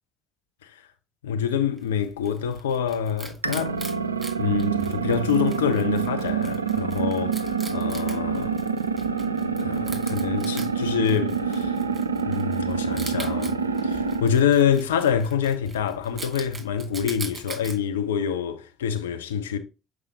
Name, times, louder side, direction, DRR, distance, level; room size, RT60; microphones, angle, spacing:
voice 1, 1.2-3.8 4.4-8.6 9.6-11.7 12.2-13.6 13.8-19.6, left 8 dB, 80° left, 0.6 m, -26 dB
Wild animals, 1.8-17.8, right 3 dB, 25° right, 2.1 m, -42 dB
sound 1, 3.4-14.3, right 6 dB, 90° right, 0.3 m, -27 dB
7.1 x 4.8 x 2.8 m
figure-of-eight pair, 50°, 0 cm